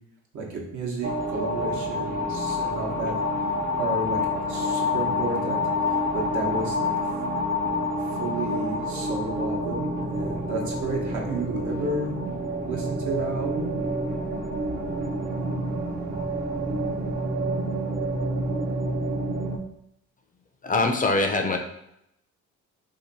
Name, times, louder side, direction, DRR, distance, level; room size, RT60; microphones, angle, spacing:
voice 1, 0.3-3.1 3.8-4.2 4.5-7.1 8.0-12.2 12.7-13.7, right 2 dB, 70° right, -2 dB, 1.0 m, -32 dB
sound 1, 1.0-19.6, left 1 dB, 30° right, 0.5 m, -28 dB
voice 2, 20.6-21.6, left 3 dB, 30° left, 4 dB, 0.4 m, -23 dB
2.8 x 2.5 x 4.0 m, 0.77 s
cardioid pair, 90°, 30 cm